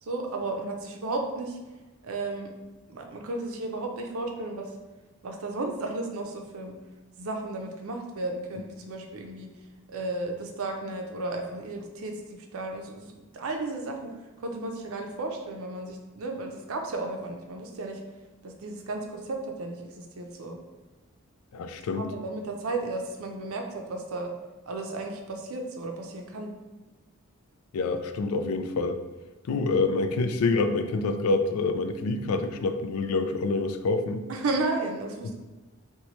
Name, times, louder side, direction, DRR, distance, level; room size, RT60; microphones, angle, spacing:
voice 1, 0.0-1.6 2.0-2.5 2.9-4.7 5.2-6.7 7.2-9.5 9.9-14.1 14.4-18.0 18.4-20.6 22.0-24.3 24.7-26.5 34.3-35.3, right 2 dB, 75° right, 3 dB, 0.5 m, -34 dB
voice 2, 21.5-22.1 27.7-29.0 29.5-34.2, left 3 dB, 75° left, 8 dB, 0.3 m, -27 dB
2.9 x 2.2 x 4.1 m, 1.1 s
head